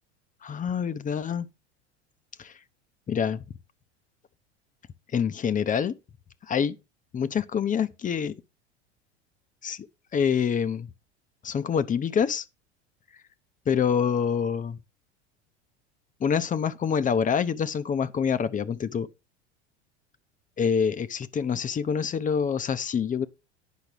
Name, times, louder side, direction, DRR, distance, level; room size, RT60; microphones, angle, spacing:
voice 1, 0.4-1.5 2.4-2.5 3.1-3.4 5.1-6.0 6.5-6.8 7.1-8.3 9.6-9.9 10.1-10.9 11.4-12.4 13.7-14.8 16.2-19.1 20.6-23.3, left 7 dB, 25° left, 0.8 m, -26 dB
10.5 x 5.7 x 5.2 m
hypercardioid pair, 85°, 34 cm